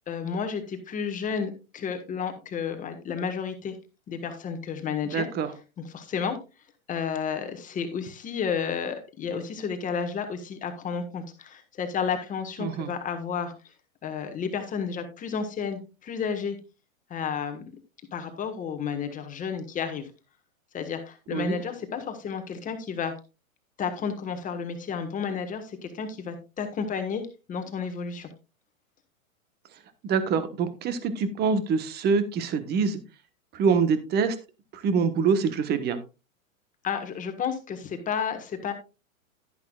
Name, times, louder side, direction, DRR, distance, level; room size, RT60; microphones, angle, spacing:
voice 1, 0.1-3.8 4.1-5.3 5.9-6.4 6.9-13.5 14.0-16.6 17.1-17.6 18.1-20.1 20.7-23.1 23.8-27.2 27.5-28.3 36.8-38.7, left 6 dB, 20° left, 6 dB, 1.5 m, -31 dB
voice 2, 5.1-5.5 12.6-12.9 21.3-21.5 30.0-33.0 33.5-34.4 34.7-36.0, right 5 dB, 25° right, 11 dB, 1.2 m, -25 dB
11.0 x 10.5 x 2.4 m, 0.29 s
hypercardioid pair, 135°, 41 cm